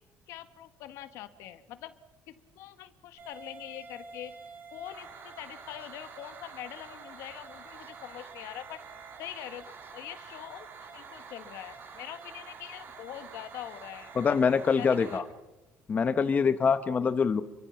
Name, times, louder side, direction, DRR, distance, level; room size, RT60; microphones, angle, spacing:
voice 1, 0.3-1.9 2.3-4.4 4.7-8.8 9.2-9.7 9.9-10.7 10.9-14.4 14.8-15.2 17.0-17.2, left 12 dB, 75° left, 10 dB, 1.8 m, -43 dB
sound 1, 3.2-15.2, right 5 dB, 50° right, 7.1 m, -47 dB
voice 2, 14.1-15.2 15.9-17.4, left 6 dB, 30° left, 11 dB, 1.1 m, -24 dB
28.5 x 23.5 x 5.9 m, 1.1 s
cardioid pair, 125°, 5 cm